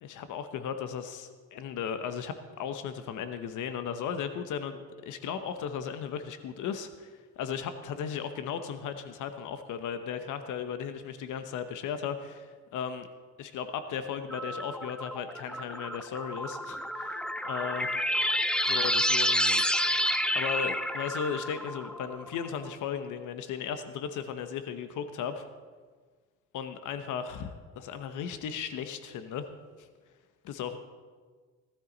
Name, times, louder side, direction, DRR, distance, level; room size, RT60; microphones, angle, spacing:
voice 1, 0.0-13.1 13.4-17.9 18.7-19.6 20.3-25.5 26.5-29.5 29.8-29.9 30.4-30.8, left 7 dB, 80° left, 9 dB, 1.0 m, -36 dB
sound 1, 14.3-22.5, equal, 5° left, 0.7 m, -29 dB
15.5 x 13.0 x 4.0 m, 1.5 s
cardioid pair, 90°, 30 cm